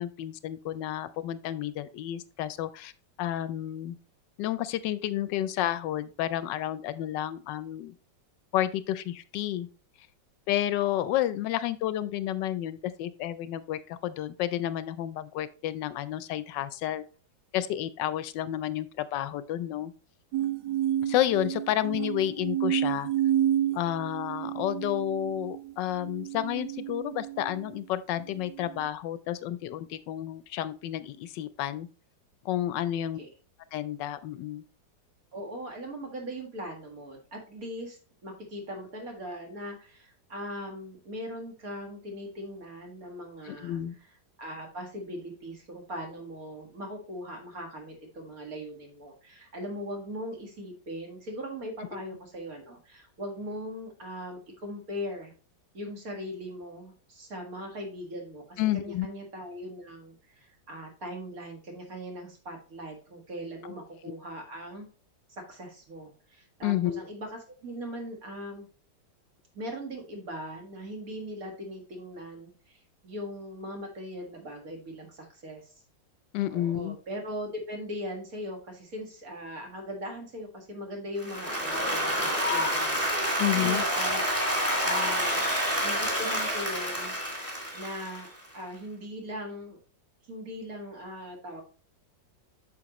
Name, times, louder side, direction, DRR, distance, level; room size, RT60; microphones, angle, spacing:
voice 1, 0.0-2.9 3.2-4.0 4.4-7.9 8.5-9.7 10.5-17.0 17.5-19.9 21.0-23.1 23.7-31.9 32.4-33.2 33.7-34.6 43.4-43.9 51.9-52.0 58.6-59.1 66.6-67.0 76.3-77.0 83.4-83.8, left 12 dB, 80° left, 14 dB, 1.2 m, -30 dB
sound 1, 20.3-27.8 28.4-28.9, right 11 dB, 80° right, 1.2 m, -30 dB
voice 2, 32.9-33.3 35.3-43.8 44.4-55.3 55.7-64.9 65.3-68.7 69.5-75.7 76.5-84.2 84.8-85.4 85.8-87.2 87.7-89.8 90.2-91.6, equal, 50° right, 2 dB, 2.2 m, -40 dB
Applause, 81.2-88.4, equal, 10° right, 2.3 m, -28 dB
8.7 x 6.3 x 3.0 m, 0.38 s
omnidirectional pair, 2.0 m